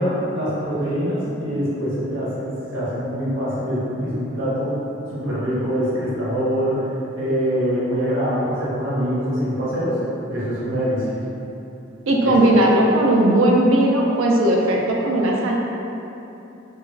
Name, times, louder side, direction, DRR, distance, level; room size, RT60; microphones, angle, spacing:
voice 1, 0.0-2.5 2.7-4.8 5.1-10.0 10.3-11.1 12.2-12.3, equal, 65° right, -9 dB, 0.9 m, -24 dB
voice 2, 12.1-15.6, right 1 dB, 80° right, -1 dB, 0.4 m, -17 dB
2.9 x 2.3 x 2.5 m, 2.9 s
head